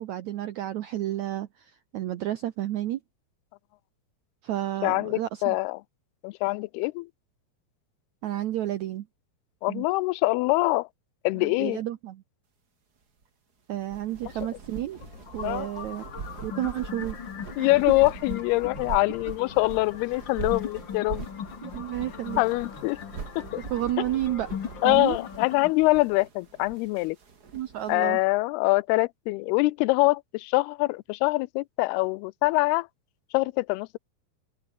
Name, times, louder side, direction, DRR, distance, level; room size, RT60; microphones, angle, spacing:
voice 1, 0.0-3.0 4.4-5.5 8.2-9.0 9.7-9.8 11.4-12.2 13.7-15.0 15.3-16.1 16.4-17.2 17.6-17.7 21.6-22.4 23.7-24.5 24.8-25.2 27.5-28.2, right 13 dB, 75° right, 1.7 m, -31 dB
voice 2, 4.8-5.8 6.2-7.1 9.6-10.9 11.2-11.8 15.4-15.7 17.6-21.3 22.4-23.0 23.4-23.6 24.8-27.2 27.9-32.9 33.3-34.0, left 22 dB, 85° left, 2.5 m, -24 dB
sound 1, 13.7-27.9, right 5 dB, 30° right, 2.0 m, -42 dB
sound 2, 14.9-25.7, left 8 dB, 60° left, 1.2 m, -40 dB
open air
omnidirectional pair, 4.6 m